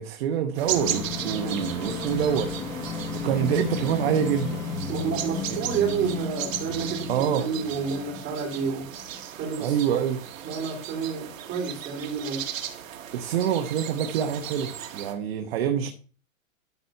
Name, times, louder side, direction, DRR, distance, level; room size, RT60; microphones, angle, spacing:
voice 1, 0.0-2.5 3.1-4.6 5.5-5.6 7.1-7.5 9.6-10.2 13.1-15.9, right 8 dB, 45° right, 6 dB, 1.1 m, -26 dB
sound 1, 0.6-9.2, left 5 dB, 10° left, 0.6 m, -34 dB
sound 2, 0.6-15.1, right 10 dB, 65° right, 1.7 m, -37 dB
voice 2, 4.9-8.9 9.3-10.0 10.4-12.5, right 6 dB, 25° right, 1 dB, 3.1 m, -30 dB
12.5 x 4.3 x 5.6 m, 0.38 s
supercardioid pair, 165°, 41 cm